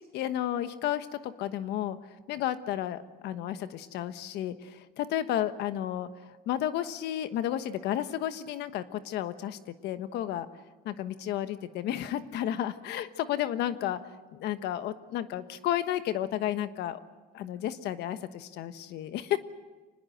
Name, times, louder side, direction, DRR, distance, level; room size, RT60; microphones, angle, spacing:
voice 1, 0.1-2.0 2.3-6.1 6.5-10.5 10.8-14.0 14.3-17.0 17.3-19.4, left 11 dB, 80° left, 11 dB, 1.3 m, -32 dB
25.5 x 20.5 x 7.9 m, 1.2 s
cardioid pair, 110°, 17 cm